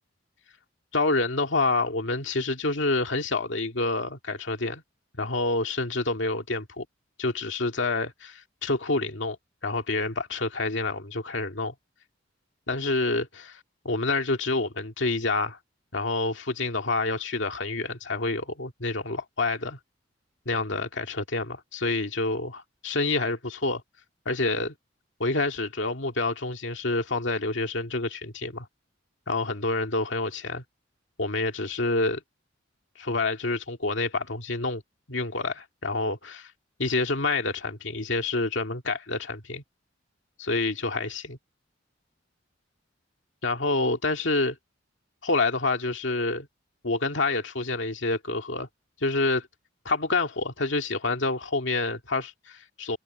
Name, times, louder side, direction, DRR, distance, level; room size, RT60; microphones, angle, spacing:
voice 1, 0.9-4.8 5.2-6.9 7.2-9.4 9.6-11.7 12.7-13.6 13.8-15.6 15.9-19.8 20.5-23.8 24.3-24.7 25.2-28.7 29.3-30.6 31.2-32.2 33.0-34.8 35.1-36.5 36.8-39.6 40.4-41.4 43.4-44.6 45.2-46.5 46.8-48.7 49.0-49.5 49.9-53.0, left 3 dB, 70° left, 2.2 m, -28 dB
head